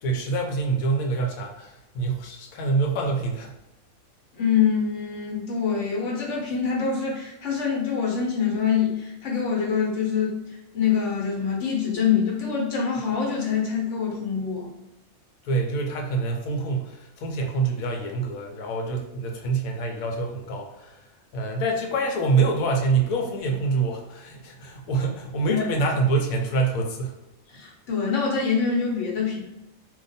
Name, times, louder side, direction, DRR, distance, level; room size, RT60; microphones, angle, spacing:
voice 1, 0.0-3.5 15.4-21.0 21.3-27.1, right 3 dB, 85° left, 2 dB, 1.1 m, -26 dB
voice 2, 4.3-14.7 25.5-25.6 27.5-29.4, left 6 dB, 60° left, -2 dB, 1.1 m, -25 dB
2.5 x 2.3 x 4.0 m, 0.95 s
omnidirectional pair, 1.4 m